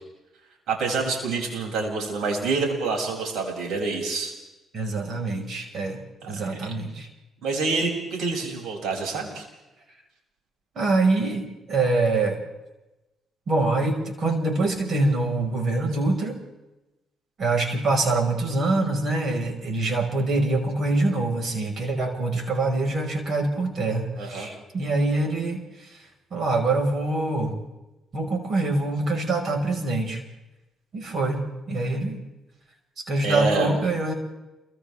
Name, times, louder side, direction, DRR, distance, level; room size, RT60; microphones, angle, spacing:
voice 1, 0.7-4.3 6.2-6.7 7.4-9.4 24.2-24.5 33.2-33.8, right 3 dB, 80° right, 0 dB, 7.9 m, -27 dB
voice 2, 4.7-6.0 6.3-7.1 10.7-12.4 13.5-16.4 17.4-26.0 26.3-27.5 28.1-30.2 30.9-32.2 33.1-34.1, right 2 dB, 55° right, 2 dB, 5.9 m, -25 dB
30.0 x 25.0 x 3.7 m, 1.0 s
cardioid pair, 90°, 0 cm